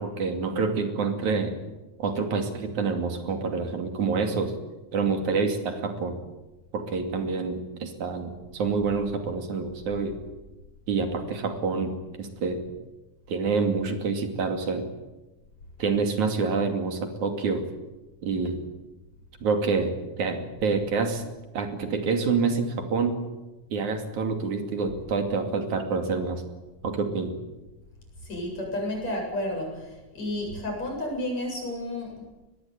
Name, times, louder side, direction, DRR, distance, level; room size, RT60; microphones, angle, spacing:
voice 1, 0.0-1.5 2.0-4.6 4.9-6.2 6.7-10.2 10.9-12.6 13.3-14.9 15.8-17.7 18.2-18.6 19.4-21.2 21.5-23.2 23.7-26.4 26.8-27.3, right 4 dB, 75° right, 5 dB, 4.0 m, -27 dB
voice 2, 28.2-32.3, left 1 dB, 60° left, 1 dB, 9.2 m, -31 dB
23.5 x 20.0 x 9.7 m, 1.1 s
omnidirectional pair, 3.4 m